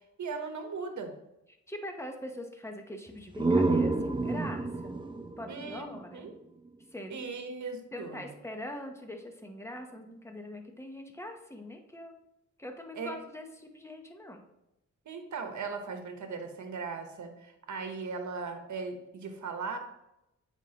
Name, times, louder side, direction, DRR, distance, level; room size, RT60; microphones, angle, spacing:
voice 1, 0.2-1.1 5.5-6.3 7.1-8.3 12.9-13.1 15.0-19.8, right 4 dB, 70° right, 5 dB, 1.1 m, -38 dB
voice 2, 1.7-5.0 5.4-6.3 6.9-7.2 7.9-12.1 12.6-14.4, left 1 dB, 10° left, 4 dB, 0.9 m, -42 dB
sound 1, 3.1-6.7, right 3 dB, 15° right, 0.5 m, -30 dB
8.2 x 5.2 x 2.9 m, 0.88 s
wide cardioid pair, 105°, 31 cm